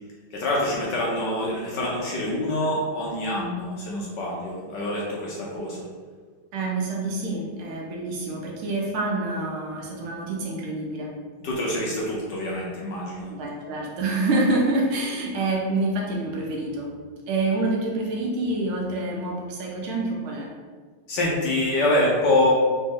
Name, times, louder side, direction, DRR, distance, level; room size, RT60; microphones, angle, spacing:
voice 1, 0.3-5.8 11.4-13.3 21.1-22.5, left 1 dB, 65° left, -4 dB, 1.3 m, -25 dB
voice 2, 6.5-11.1 13.3-16.9 17.3-20.5, right 2 dB, 75° right, -1 dB, 1.6 m, -27 dB
4.3 x 3.1 x 3.6 m, 1.5 s
omnidirectional pair, 2.4 m